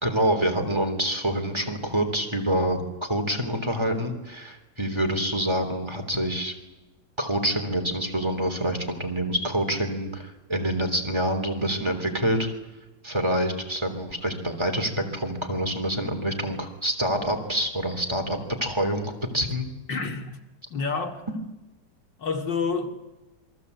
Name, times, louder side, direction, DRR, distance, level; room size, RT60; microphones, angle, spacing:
voice 1, 0.0-6.5 7.2-12.5 13.0-19.7, equal, 15° right, 3.4 m, -26 dB
voice 2, 19.9-20.4 20.7-21.2 22.2-22.9, left 5 dB, 85° left, 3.1 m, -28 dB
27.5 x 22.5 x 8.4 m
omnidirectional pair, 1.9 m